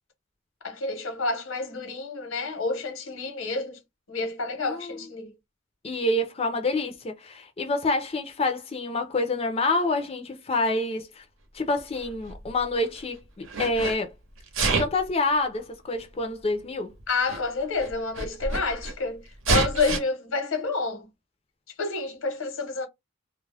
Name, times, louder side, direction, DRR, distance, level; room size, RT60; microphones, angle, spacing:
voice 1, 0.6-3.8 4.1-5.3 17.1-19.2 19.5-21.1 21.8-22.9, left 3 dB, 80° left, 0.9 m, -29 dB
voice 2, 4.6-5.0 5.8-11.2 11.5-14.1 14.6-16.9, left 2 dB, 30° left, 0.4 m, -27 dB
Sneeze, 12.0-13.0 13.4-14.0 14.5-15.1 16.0-16.1 17.0-17.1 17.3-17.4 17.8-18.9 19.4-20.0, right 3 dB, 75° right, 0.8 m, -27 dB
2.2 x 2.0 x 3.2 m
head